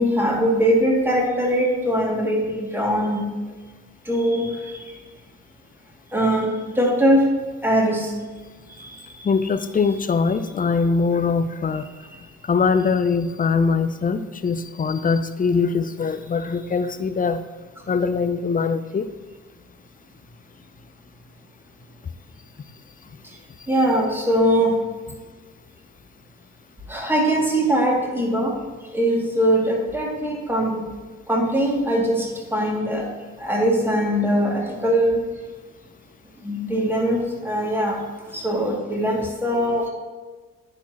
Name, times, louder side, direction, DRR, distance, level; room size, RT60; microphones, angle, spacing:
voice 1, 0.0-3.3 4.1-4.5 6.1-6.5 6.8-7.2 7.6-8.1 23.7-24.7 26.9-28.5 28.9-30.8 31.3-32.3 32.5-33.1 33.4-35.2 36.4-37.2 37.4-38.0 38.3-39.9, equal, 5° right, -2 dB, 2.4 m, -21 dB
voice 2, 9.2-11.8 12.5-17.4 17.9-19.0, left 5 dB, 20° left, 12 dB, 0.5 m, -22 dB
9.8 x 5.9 x 3.0 m, 1.4 s
hypercardioid pair, 45°, 38 cm